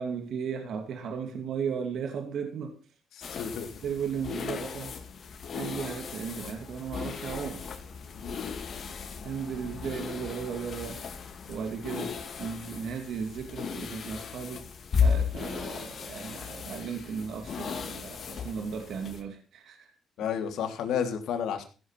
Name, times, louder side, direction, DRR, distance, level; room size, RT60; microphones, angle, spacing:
voice 1, 0.0-2.7 3.2-3.3 3.8-5.0 5.5-7.6 9.2-11.0 11.5-14.7 15.0-19.9, right 6 dB, 70° right, 2.4 m, -36 dB
voice 2, 3.1-3.7 8.2-8.4 20.2-21.6, left 8 dB, 80° left, 2.9 m, -31 dB
sound 1, 3.2-19.2, left 6 dB, 55° left, 2.4 m, -35 dB
15.5 x 8.0 x 5.9 m
cardioid pair, 90°, 0 cm